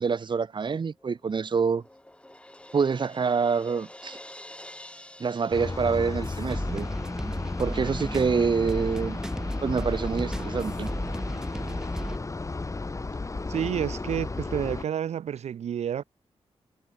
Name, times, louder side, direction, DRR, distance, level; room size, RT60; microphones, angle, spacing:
voice 1, 0.0-1.8 2.7-4.2 5.2-6.9 7.6-9.2 9.6-10.9, right 5 dB, 45° right, 1.0 m, -26 dB
Crash cymbal, 1.0-6.7, left 1 dB, 10° left, 6.8 m, -48 dB
sound 1, 5.5-14.8, left 3 dB, 30° left, 2.5 m, -34 dB
sound 2, 6.2-12.2, right 1 dB, 5° right, 1.2 m, -35 dB
voice 2, 13.5-16.0, right 9 dB, 90° right, 0.8 m, -29 dB
wide cardioid pair, 100°, 11 cm